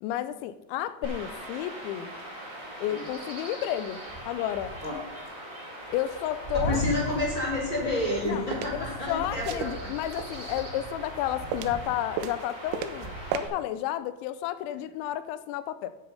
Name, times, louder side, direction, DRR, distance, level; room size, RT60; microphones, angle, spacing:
voice 1, 0.0-2.1 2.8-4.7 5.9-6.8 8.2-8.4 8.7-15.9, left 12 dB, 85° left, 13 dB, 2.8 m, -32 dB
Chirp tweet / Wind / Stream, 1.0-13.5, right 1 dB, 30° right, 1.6 m, -38 dB
voice 2, 6.6-9.9, left 2 dB, 30° left, -4 dB, 2.5 m, -30 dB
sound 1, 8.0-8.7 9.4-10.7 11.1-11.9 12.2-13.1 13.3-13.4, right 10 dB, 80° right, 2.9 m, -34 dB
10.5 x 7.8 x 5.4 m, 0.99 s
omnidirectional pair, 5.4 m